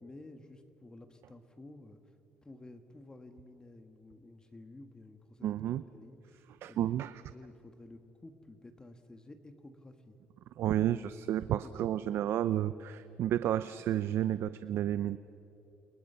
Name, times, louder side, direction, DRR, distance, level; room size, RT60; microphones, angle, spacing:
voice 1, 0.0-5.6 5.9-7.0 7.3-10.2 11.6-12.3, left 2 dB, 15° left, 7 dB, 1.5 m, -53 dB
voice 2, 5.4-5.8 6.6-7.1 10.6-15.2, right 11 dB, 65° right, 13 dB, 0.6 m, -31 dB
30.0 x 27.0 x 5.6 m, 2.9 s
cardioid pair, 120°, 5 cm